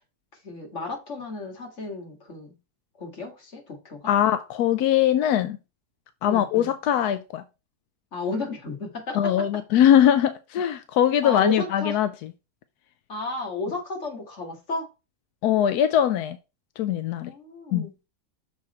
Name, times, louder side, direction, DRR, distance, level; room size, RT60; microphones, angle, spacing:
voice 1, 0.4-2.6 3.0-4.1 6.3-6.7 8.1-9.5 9.7-9.8 11.2-12.0 13.1-14.9 17.2-18.0, left 2 dB, 50° left, 2.4 m, -33 dB
voice 2, 4.1-5.6 6.2-7.4 9.1-12.1 15.4-16.4 16.8-17.3 17.7-17.8, left 10 dB, 85° left, 1.2 m, -21 dB
6.4 x 4.8 x 4.3 m
omnidirectional pair, 1.6 m